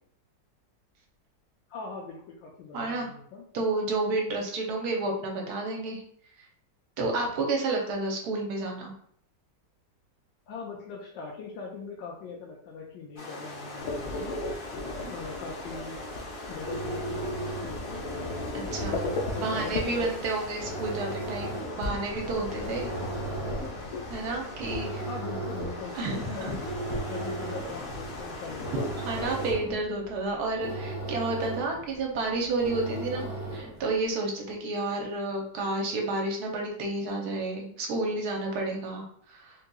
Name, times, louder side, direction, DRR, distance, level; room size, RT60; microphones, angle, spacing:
voice 1, 1.7-3.4 10.5-14.3 15.1-16.0 16.5-18.0 19.3-20.1 22.9-23.3 25.0-26.0 26.3-26.6 27.0-28.9, left 5 dB, 85° left, -3 dB, 1.3 m, -41 dB
voice 2, 2.7-3.1 3.5-6.0 7.0-8.9 14.9-15.1 18.5-22.9 24.1-25.1 26.0-26.5 28.7-33.3 33.5-39.5, right 2 dB, 70° right, 0 dB, 1.2 m, -31 dB
sound 1, 13.2-29.5, left 1 dB, 50° left, 0.6 m, -41 dB
sound 2, 13.8-29.8, left 2 dB, 70° left, 1.0 m, -38 dB
sound 3, 16.5-33.9, right 2 dB, 30° right, 1.1 m, -37 dB
3.7 x 2.7 x 2.2 m, 0.63 s
omnidirectional pair, 1.9 m